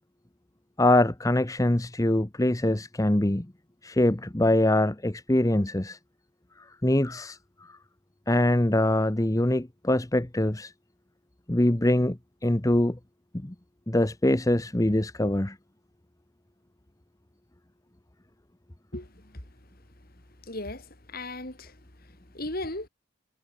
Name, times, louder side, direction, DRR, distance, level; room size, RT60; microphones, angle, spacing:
voice 1, 0.8-3.5 3.8-6.0 6.8-7.4 8.3-10.7 11.5-13.0 13.4-13.5 13.9-15.5, left 1 dB, 15° left, 0.8 m, -23 dB
voice 2, 18.9-19.4 20.4-21.8 22.1-22.9, left 1 dB, 45° left, 4.0 m, -37 dB
head